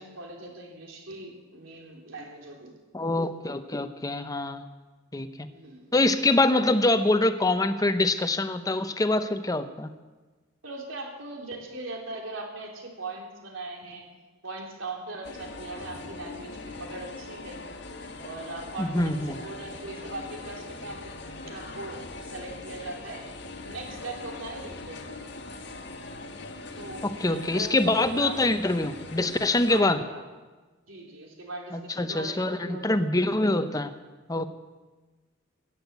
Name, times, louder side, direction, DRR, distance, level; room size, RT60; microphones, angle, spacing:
voice 1, 0.0-2.7 5.5-5.9 10.6-14.0 14.4-17.6 18.2-23.2 23.6-25.2 26.8-28.4 29.7-30.2 30.9-32.8, right 2 dB, 80° right, 1 dB, 3.3 m, -40 dB
voice 2, 2.9-4.6 5.1-5.5 5.9-9.9 18.8-19.4 27.0-30.0 31.7-33.9 34.3-34.5, left 2 dB, 20° left, 10 dB, 0.8 m, -25 dB
sound 1, 15.2-29.8, left 2 dB, 60° left, 1.5 m, -41 dB
15.5 x 10.0 x 8.1 m, 1.3 s
head